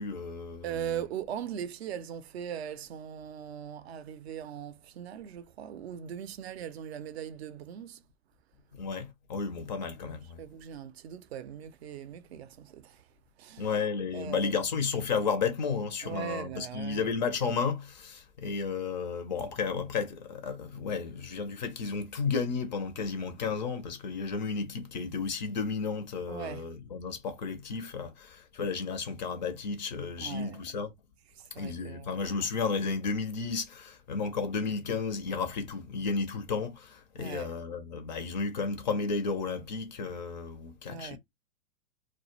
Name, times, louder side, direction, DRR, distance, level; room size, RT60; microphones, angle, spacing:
voice 1, 0.0-0.7 8.7-10.4 13.6-30.9 31.6-41.2, left 5 dB, 35° left, 0.4 m, -33 dB
voice 2, 0.6-8.0 10.4-13.7 14.1-14.5 16.0-17.2 26.3-26.6 30.2-30.6 31.3-32.2 37.2-37.5 40.9-41.2, right 9 dB, 50° right, 0.5 m, -40 dB
2.2 x 2.0 x 2.8 m
hypercardioid pair, 120°, 41 cm